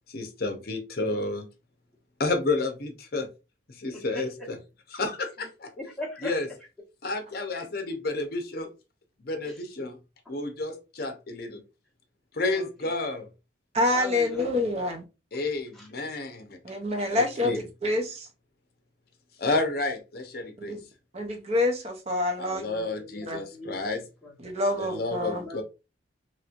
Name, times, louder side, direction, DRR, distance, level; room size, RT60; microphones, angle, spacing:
voice 1, 0.1-1.5 2.2-3.3 3.7-4.6 4.9-5.7 6.2-6.5 7.0-8.7 9.2-10.0 10.3-11.6 12.3-13.3 15.3-16.6 17.1-17.6 19.4-20.8 22.4-24.0 24.8-25.6, left 2 dB, 50° left, 0.7 m, -30 dB
voice 2, 3.9-4.5 5.4-5.5 5.8-6.4 9.4-9.6 12.5-12.9 13.9-14.6 15.7-15.9 22.7-24.5 25.3-25.6, left 1 dB, ahead, 1.2 m, -40 dB
voice 3, 13.7-15.0 16.6-18.3 20.6-20.8 21.1-22.7 23.3-23.4 24.4-25.4, left 2 dB, 35° right, 0.6 m, -27 dB
3.1 x 3.0 x 2.4 m
head